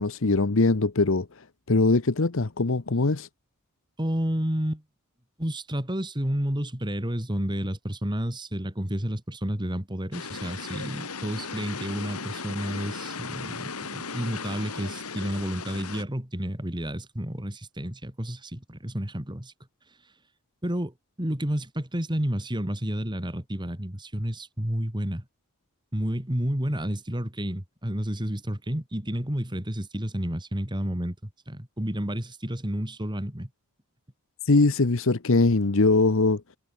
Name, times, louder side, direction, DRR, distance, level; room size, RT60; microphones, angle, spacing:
voice 1, 0.0-3.3 34.4-36.4, left 3 dB, 60° left, 1.0 m, -22 dB
voice 2, 4.0-4.8 5.4-19.5 20.6-25.2 25.9-33.5, equal, 20° right, 2.7 m, -30 dB
sound 1, 10.1-16.0, left 4 dB, 80° left, 3.5 m, -36 dB
head